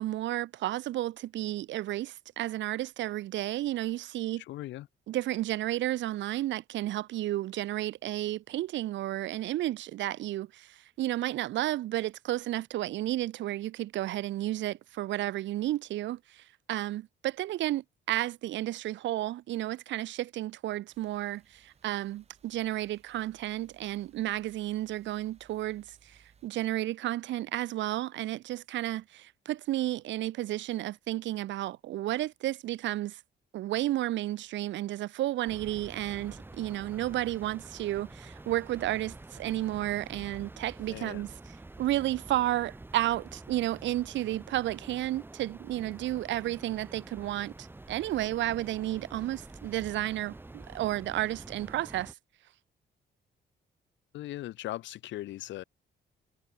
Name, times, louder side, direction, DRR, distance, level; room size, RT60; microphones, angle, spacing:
voice 1, 0.0-4.4 5.1-33.2 33.5-41.3 41.8-52.1, right 14 dB, 80° right, 0.6 m, -32 dB
voice 2, 4.4-4.9 40.9-41.2 54.1-55.6, left 15 dB, 80° left, 0.5 m, -39 dB
sound 1, 20.9-26.5, right 6 dB, 35° right, 2.3 m, -64 dB
sound 2, 35.5-52.1, right 2 dB, 10° right, 2.7 m, -48 dB
cardioid pair, 165°, 19 cm